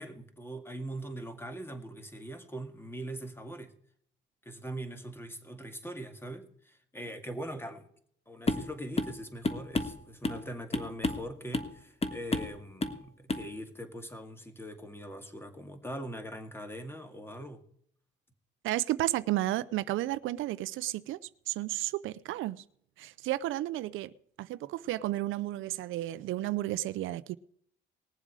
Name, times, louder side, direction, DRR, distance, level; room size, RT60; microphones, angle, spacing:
voice 1, 0.0-3.7 4.4-7.8 8.3-17.6, right 1 dB, 10° left, 2.0 m, -42 dB
sound 1, 8.5-8.7 9.0-9.2 9.4-10.4 10.7-11.3 11.5-11.7 12.0-12.5 12.8-13.0 13.3-13.5, left 3 dB, 30° left, 1.4 m, -31 dB
voice 2, 18.6-21.2 21.5-22.6 23.0-24.1 24.4-27.4, right 15 dB, 85° right, 0.5 m, -32 dB
19.5 x 7.4 x 4.8 m
cardioid pair, 90°, 20 cm